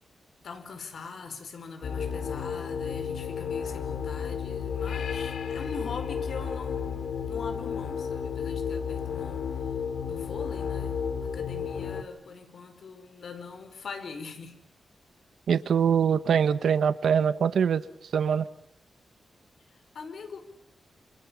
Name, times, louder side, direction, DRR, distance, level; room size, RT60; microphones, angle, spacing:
voice 1, 0.4-9.5 10.0-14.6 19.9-20.4, left 5 dB, 65° left, 7 dB, 5.1 m, -42 dB
sound 1, 1.8-12.0, left 7 dB, 80° left, 2.7 m, -32 dB
voice 2, 15.5-17.9 18.1-18.5, right 7 dB, 80° right, 13 dB, 1.1 m, -23 dB
29.0 x 27.0 x 7.2 m, 0.75 s
wide cardioid pair, 130°, 0 cm